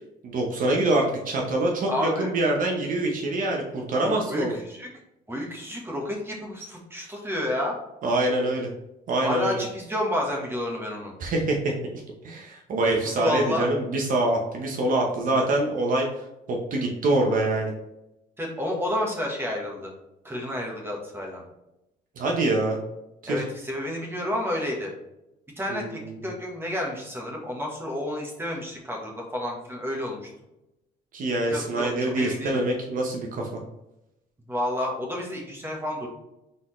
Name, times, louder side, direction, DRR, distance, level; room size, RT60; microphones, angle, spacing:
voice 1, 0.2-4.5 8.0-8.7 9.1-9.6 11.2-11.7 12.2-16.1 16.5-17.7 22.2-22.8 23.2-23.4 25.7-26.1 31.1-33.5, right 2 dB, 55° right, 0 dB, 0.8 m, -25 dB
voice 2, 1.9-2.3 4.0-4.9 5.3-7.8 9.2-11.1 12.8-13.7 18.4-19.9 20.2-21.4 23.3-24.9 25.6-30.2 31.4-32.6 34.5-36.1, left 1 dB, 15° right, -1 dB, 1.2 m, -30 dB
4.0 x 3.8 x 3.1 m, 0.90 s
cardioid pair, 110°, 17 cm